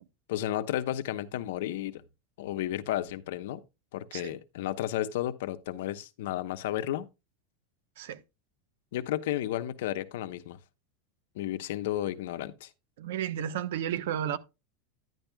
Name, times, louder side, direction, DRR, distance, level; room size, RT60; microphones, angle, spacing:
voice 1, 0.3-2.0 2.4-3.6 3.9-7.1 8.9-10.6 11.3-12.7, left 13 dB, 75° left, 1.0 m, -32 dB
voice 2, 13.0-14.4, right 10 dB, 80° right, 0.9 m, -32 dB
11.0 x 10.5 x 2.3 m
supercardioid pair, 170°, 0 cm